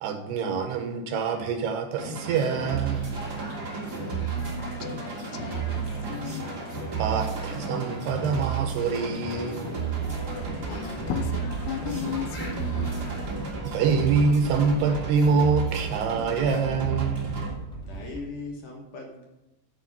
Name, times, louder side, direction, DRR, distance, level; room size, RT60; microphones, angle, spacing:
voice 1, 0.0-3.1 7.0-10.0 13.6-17.4, right 5 dB, 75° right, 6 dB, 2.7 m, -25 dB
sound 1, 2.0-17.5, right 5 dB, 60° right, 1.0 m, -32 dB
sound 2, 2.6-13.5, equal, 25° left, 1.6 m, -42 dB
voice 2, 3.7-6.5 10.7-13.2, left 8 dB, 85° left, 6 dB, 2.9 m, -36 dB
sound 3, 9.9-18.2, right 3 dB, 5° left, 0.9 m, -40 dB
voice 3, 17.9-19.2, left 3 dB, 60° left, 0 dB, 2.4 m, -38 dB
10.5 x 4.8 x 7.3 m, 0.98 s
omnidirectional pair, 5.1 m